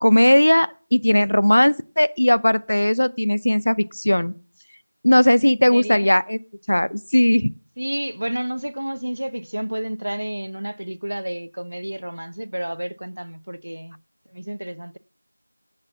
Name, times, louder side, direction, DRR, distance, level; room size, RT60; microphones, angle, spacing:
voice 1, 0.0-4.3 5.0-6.4 6.7-7.5, left 1 dB, 80° left, 0.6 m, -18 dB
voice 2, 5.7-6.1 7.8-14.0 14.3-15.0, right 1 dB, 85° right, 0.8 m, -30 dB
9.0 x 6.7 x 7.1 m
figure-of-eight pair, 180°, 0 cm